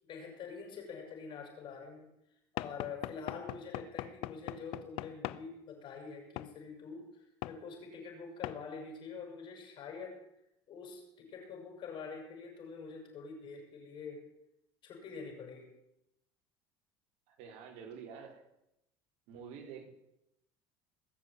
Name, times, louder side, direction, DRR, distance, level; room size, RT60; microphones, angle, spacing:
voice 1, 0.0-2.1 2.5-10.2 10.7-14.3 14.8-15.7, left 5 dB, 50° left, 3 dB, 7.0 m, -46 dB
Knock / Wood, 2.6-5.5 6.4-6.5 7.4-7.6 8.4-8.6, left 17 dB, 70° left, 0.7 m, -40 dB
voice 2, 17.3-18.4 19.3-19.9, right 7 dB, 75° right, 2 dB, 4.0 m, -48 dB
20.5 x 7.5 x 9.3 m, 0.85 s
supercardioid pair, 105°, 10 cm